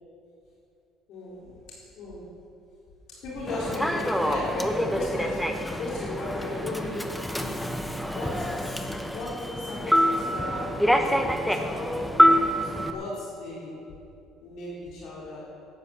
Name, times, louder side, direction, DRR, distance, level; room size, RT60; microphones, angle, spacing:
voice 1, 1.1-1.5 1.9-2.2 3.2-7.0 7.3-7.6 8.0-11.9 12.5-13.8 14.4-15.4, left 2 dB, 65° left, -6 dB, 4.1 m, -36 dB
Human voice / Subway metro underground, 3.5-12.9, equal, 5° left, 1.0 m, -26 dB
13.0 x 9.1 x 8.8 m, 2.6 s
cardioid pair, 125°, 0 cm